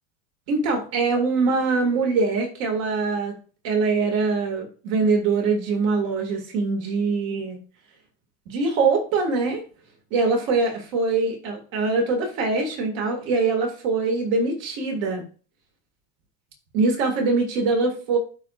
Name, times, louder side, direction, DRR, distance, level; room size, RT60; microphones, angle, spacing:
voice 1, 0.5-3.4 3.6-7.6 8.5-9.6 10.1-15.2 16.7-18.2, right 4 dB, 45° right, 2 dB, 2.2 m, -23 dB
12.5 x 4.4 x 2.5 m, 0.38 s
cardioid pair, 180°, 47 cm